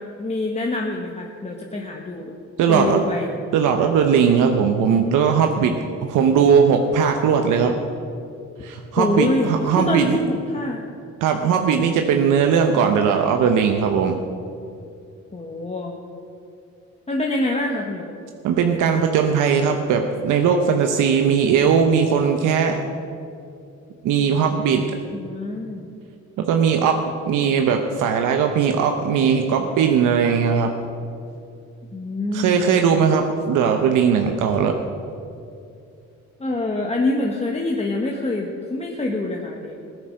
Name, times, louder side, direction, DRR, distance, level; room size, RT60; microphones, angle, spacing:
voice 1, 0.0-2.3 2.7-3.3 9.0-10.9 15.3-15.9 17.1-18.1 25.1-25.9 31.9-32.6 36.4-39.8, left 2 dB, 20° left, 0 dB, 1.4 m, -25 dB
voice 2, 2.6-3.0 3.5-5.7 6.0-7.7 8.6-10.2 11.2-14.2 18.4-22.8 24.0-24.8 26.5-30.7 32.3-34.7, right 6 dB, 85° right, 4 dB, 0.9 m, -19 dB
16.0 x 9.7 x 6.5 m, 2.5 s
cardioid pair, 90°, 30 cm